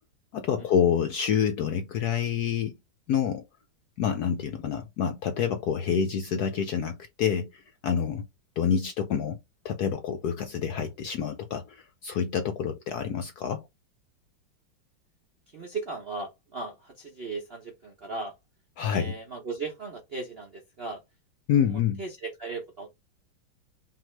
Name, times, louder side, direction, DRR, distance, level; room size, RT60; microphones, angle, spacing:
voice 1, 0.3-2.7 3.1-3.4 4.0-8.2 8.6-9.4 9.6-13.6 18.8-19.1 21.5-22.0, left 8 dB, 70° left, 0.9 m, -27 dB
voice 2, 15.5-18.3 18.9-21.0 21.6-22.9, right 3 dB, 55° right, 0.6 m, -37 dB
5.7 x 2.7 x 3.1 m
omnidirectional pair, 2.2 m